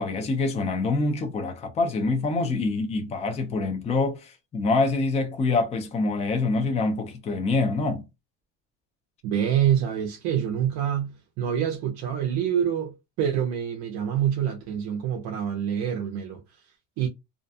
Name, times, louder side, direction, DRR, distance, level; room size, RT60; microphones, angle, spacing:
voice 1, 0.0-8.0, left 3 dB, 20° left, 0.4 m, -25 dB
voice 2, 9.2-17.1, right 9 dB, 50° right, 0.5 m, -26 dB
2.5 x 2.1 x 2.6 m
cardioid pair, 160°, 35 cm